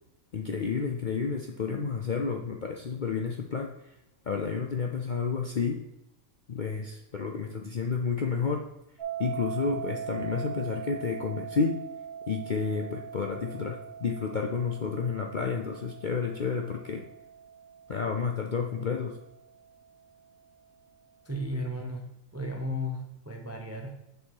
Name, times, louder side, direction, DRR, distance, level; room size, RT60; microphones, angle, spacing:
voice 1, 0.3-3.9 4.2-5.8 6.5-8.6 9.2-11.7 12.3-17.0 17.9-19.1, left 5 dB, 50° left, 2 dB, 0.6 m, -30 dB
sound 1, 9.0-19.9, right 8 dB, 45° right, 1.7 m, -41 dB
voice 2, 21.3-23.9, left 1 dB, 20° right, 2 dB, 0.5 m, -35 dB
6.8 x 4.2 x 4.7 m, 0.92 s
omnidirectional pair, 1.5 m